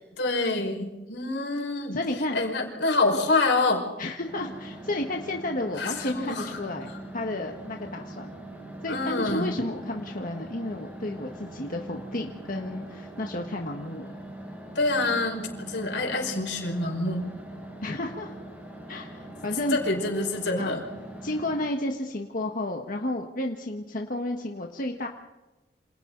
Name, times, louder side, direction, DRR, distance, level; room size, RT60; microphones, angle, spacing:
voice 1, 0.2-2.0 2.3-3.9 5.8-6.5 8.9-9.5 14.8-17.3 19.7-20.8, left 2 dB, 85° left, 1 dB, 5.4 m, -26 dB
voice 2, 1.9-2.4 4.0-8.3 8.8-14.1 17.8-18.4 18.9-19.8 20.6-20.8 21.2-25.1, left 1 dB, 50° left, 2 dB, 1.6 m, -32 dB
sound 1, 4.2-21.7, right 1 dB, 10° right, 5.9 m, -42 dB
28.5 x 27.0 x 4.0 m, 1.1 s
head